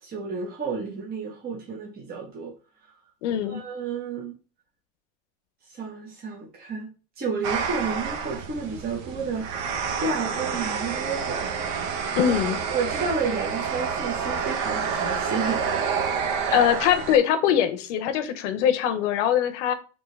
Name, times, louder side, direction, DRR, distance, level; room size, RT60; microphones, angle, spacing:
voice 1, 0.0-2.5 3.4-4.4 5.7-6.9 7.2-11.5 11.9-12.4 12.7-15.6 16.4-16.6, right 5 dB, 25° right, -2 dB, 0.8 m, -31 dB
voice 2, 3.2-3.6 12.1-12.6 16.5-19.7, left 9 dB, 80° left, 10 dB, 0.7 m, -22 dB
sound 1, 7.4-17.2, right 6 dB, 55° right, 0.8 m, -28 dB
3.5 x 2.8 x 3.2 m, 0.36 s
supercardioid pair, 120°, 36 cm